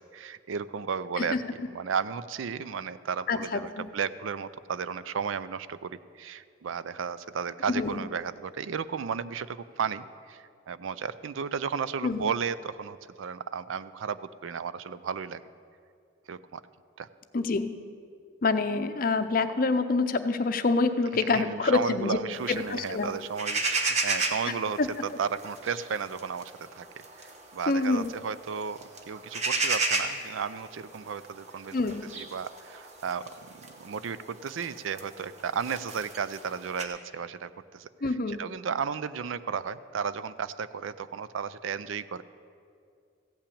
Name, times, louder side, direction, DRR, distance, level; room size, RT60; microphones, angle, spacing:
voice 1, 0.0-1.4 1.7-15.4 16.3-16.6 17.0-17.1 21.4-24.8 25.2-26.9 27.2-31.8 32.1-37.9 38.4-42.2, right 6 dB, 80° right, 15 dB, 0.4 m, -34 dB
voice 2, 3.3-3.9 7.7-8.0 12.0-12.3 17.3-17.7 18.4-22.2 22.5-23.1 24.8-24.9 27.7-28.1 31.7-32.1 38.0-38.4, left 3 dB, 45° left, 10 dB, 0.5 m, -26 dB
sound 1, 22.3-36.8, right 3 dB, 35° right, 0.9 m, -34 dB
15.0 x 5.8 x 8.5 m, 2.3 s
head